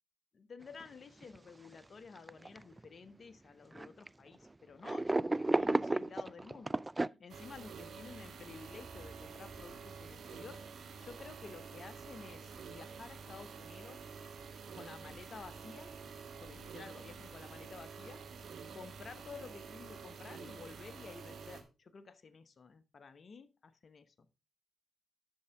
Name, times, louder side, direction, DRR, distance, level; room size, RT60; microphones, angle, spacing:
voice 1, 0.3-10.6 11.0-14.0 14.7-18.2 18.7-24.1, left 5 dB, 50° left, 1.1 m, -52 dB
sound 1, 0.8-0.9 1.2-1.4 2.2-2.8 3.7-4.1 4.8-7.1, right 2 dB, 20° right, 0.3 m, -32 dB
sound 2, 7.3-21.6, right 5 dB, 65° right, 1.7 m, -49 dB
9.5 x 6.9 x 3.5 m
supercardioid pair, 55°, 0 cm